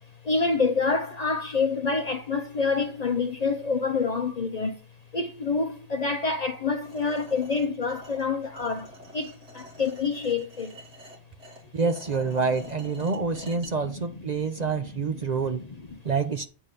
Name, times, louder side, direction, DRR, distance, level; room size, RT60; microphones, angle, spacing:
voice 1, 0.2-4.8 5.1-8.9 9.1-10.8 13.5-14.0 14.6-16.0, left 4 dB, 45° left, 0.6 m, -28 dB
sound 1, 6.8-13.7, equal, 75° right, 2.8 m, -47 dB
voice 2, 11.7-15.6 16.0-16.5, right 4 dB, 45° right, 0.6 m, -27 dB
8.9 x 3.6 x 6.7 m
omnidirectional pair, 1.2 m